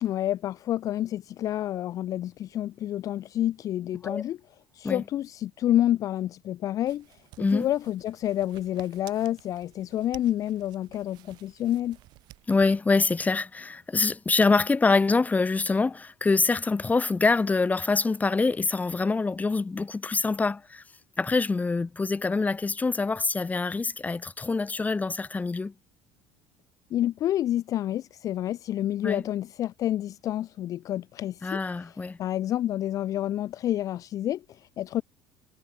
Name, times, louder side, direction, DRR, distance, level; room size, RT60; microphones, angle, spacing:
voice 1, 0.0-4.4 4.7-12.0 26.9-35.0, left 12 dB, 45° left, 0.3 m, -29 dB
sound 1, 6.9-12.8, right 19 dB, 65° right, 6.4 m, -53 dB
voice 2, 12.5-20.8 21.2-25.7 29.0-29.2 31.4-32.2, left 3 dB, 20° left, 1.4 m, -25 dB
hypercardioid pair, 75°, 8 cm